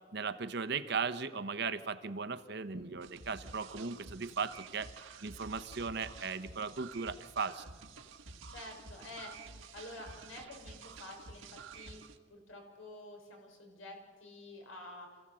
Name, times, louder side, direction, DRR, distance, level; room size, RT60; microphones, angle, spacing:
voice 1, 0.1-4.9 5.2-7.6, right 5 dB, 55° right, 10 dB, 1.0 m, -37 dB
sound 1, 3.0-12.2, right 4 dB, 85° right, 1.5 m, -51 dB
voice 2, 8.5-11.5 11.7-12.0 12.3-15.1, left 1 dB, 85° left, 1 dB, 6.3 m, -49 dB
27.0 x 16.0 x 7.8 m, 1.5 s
head